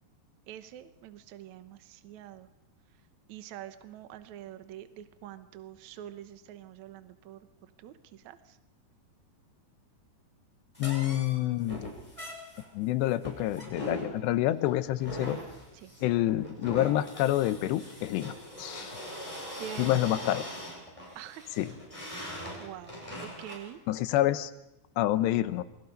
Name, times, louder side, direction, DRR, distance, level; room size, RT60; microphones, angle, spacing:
voice 1, 0.5-2.5 3.3-8.6 15.7-15.9 19.6-20.1 21.1-21.5 22.2-23.8 24.2-24.4, right 11 dB, 90° right, 11 dB, 1.6 m, -46 dB
sound 1, 10.7-23.7, equal, 5° left, 6.1 m, -41 dB
voice 2, 10.8-11.9 12.7-15.4 16.0-19.0 19.8-20.4 21.6-21.7 23.9-24.5 25.0-25.6, left 14 dB, 80° left, 13 dB, 3.1 m, -28 dB
28.5 x 24.5 x 5.3 m, 0.89 s
omnidirectional pair, 5.0 m